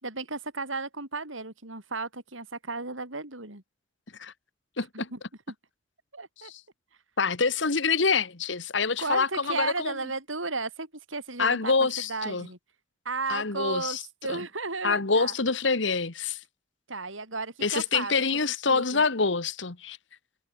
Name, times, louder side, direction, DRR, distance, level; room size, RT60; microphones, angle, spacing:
voice 1, 0.0-3.6 4.8-5.2 5.5-5.6 6.1-6.5 9.0-12.6 13.0-15.3 16.9-18.1 18.7-19.0, right 3 dB, 85° right, 7.6 m, -34 dB
voice 2, 4.8-5.1 6.4-6.6 7.2-9.9 11.4-12.5 13.3-14.0 14.3-14.4 14.8-16.4 17.6-20.0, left 4 dB, 65° left, 1.6 m, -26 dB
head